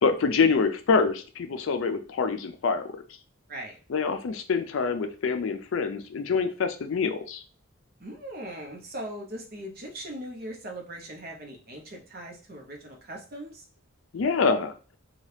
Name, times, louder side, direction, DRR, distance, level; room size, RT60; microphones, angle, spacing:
voice 1, 0.0-3.0 3.9-7.4 14.1-14.7, left 5 dB, 65° left, 8 dB, 0.4 m, -26 dB
voice 2, 8.0-13.7, right 1 dB, 45° right, 1 dB, 0.7 m, -40 dB
2.8 x 2.3 x 3.2 m, 0.36 s
head